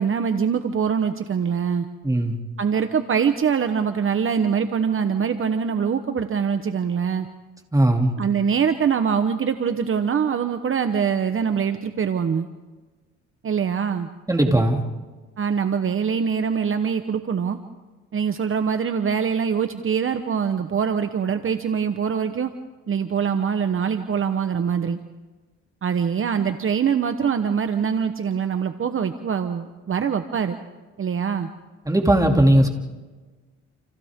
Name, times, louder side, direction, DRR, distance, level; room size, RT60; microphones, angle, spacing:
voice 1, 0.0-1.9 2.6-7.3 8.2-12.5 13.4-14.1 15.4-17.6 18.1-22.5 22.9-25.0 25.8-30.6 31.0-31.5, right 7 dB, 45° right, 8 dB, 1.1 m, -23 dB
voice 2, 2.0-2.3 7.7-8.1 14.3-14.8 31.9-32.7, right 1 dB, 10° right, 2 dB, 2.9 m, -18 dB
29.5 x 28.5 x 3.7 m, 1.3 s
cardioid pair, 90°, 30 cm